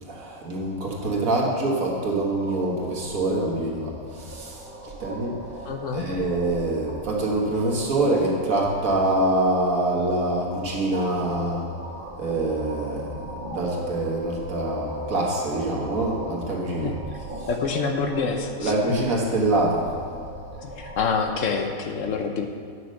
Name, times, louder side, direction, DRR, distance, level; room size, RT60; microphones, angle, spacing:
voice 1, 0.1-5.4 5.9-11.7 12.2-13.1 13.4-16.9 17.4-17.5 18.6-20.2, right 2 dB, 65° right, -2 dB, 2.0 m, -25 dB
sound 1, 2.4-21.4, right 1 dB, 40° right, 1.4 m, -39 dB
voice 2, 5.7-6.0 16.8-16.9 17.5-18.7 20.6-22.5, left 5 dB, 65° left, 4 dB, 1.1 m, -26 dB
9.4 x 6.2 x 6.4 m, 2.2 s
omnidirectional pair, 1.5 m